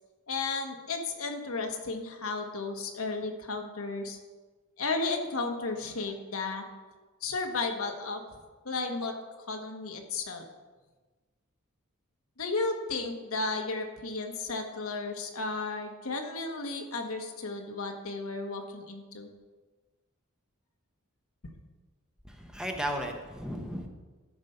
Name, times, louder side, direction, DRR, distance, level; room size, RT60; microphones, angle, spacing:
voice 1, 0.3-4.2 4.8-6.6 7.2-8.2 8.6-9.1 9.5-10.4 12.4-19.3 21.4-21.6, left 3 dB, 70° left, 4 dB, 1.3 m, -34 dB
voice 2, 22.3-23.9, equal, 5° right, 2 dB, 0.8 m, -35 dB
13.0 x 5.3 x 5.6 m, 1.3 s
head